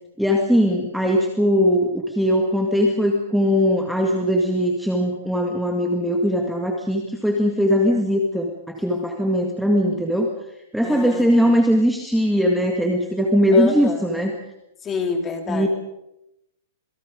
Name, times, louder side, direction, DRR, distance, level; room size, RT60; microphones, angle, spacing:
voice 1, 0.2-10.3 10.7-14.4 15.5-15.7, equal, ahead, 1 dB, 1.9 m, -20 dB
voice 2, 10.8-11.5 13.5-14.0 14.8-15.7, left 4 dB, 15° left, 4 dB, 3.6 m, -27 dB
27.0 x 22.0 x 5.2 m, 0.88 s
hypercardioid pair, 160°, 0 cm